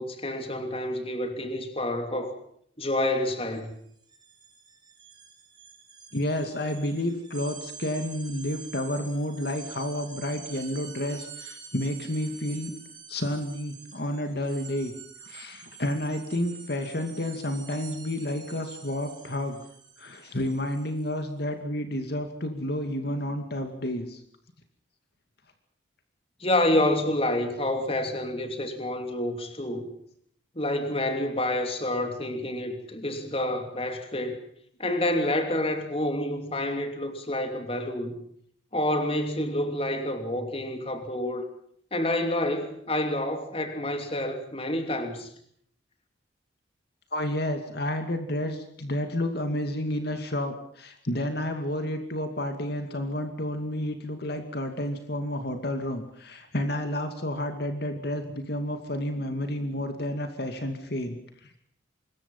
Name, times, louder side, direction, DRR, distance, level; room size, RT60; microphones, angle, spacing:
voice 1, 0.0-2.4 2.8-3.7 26.4-29.9 30.5-34.4 34.8-38.2 38.7-41.4 41.9-45.3, left 1 dB, 30° left, 3.0 m, -28 dB
sound 1, 3.5-3.6 3.9-21.2, right 6 dB, 25° right, 7.0 m, -47 dB
voice 2, 6.1-12.7 13.1-14.9 15.2-19.6 20.0-24.2 47.1-61.2, left 1 dB, 55° left, 2.5 m, -30 dB
25.5 x 21.5 x 5.6 m
head